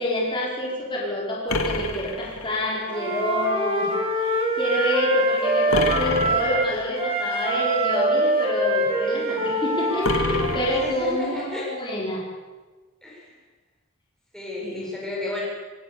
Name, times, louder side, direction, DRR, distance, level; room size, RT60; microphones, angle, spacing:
voice 1, 0.0-3.9 4.2-12.2 14.6-14.9, left 1 dB, 25° left, -4 dB, 5.0 m, -27 dB
sound 1, 1.5-2.9 5.7-6.9 10.0-11.4, left 2 dB, 90° left, 2.4 m, -28 dB
Wind instrument woodwind instrument, 2.9-6.7 7.0-10.8, right 1 dB, 25° right, 4.7 m, -24 dB
voice 2, 5.6-6.0 10.8-11.7 13.0-13.4 14.3-15.4, left 2 dB, 5° left, -4 dB, 6.9 m, -33 dB
24.0 x 17.0 x 6.9 m, 1.3 s
head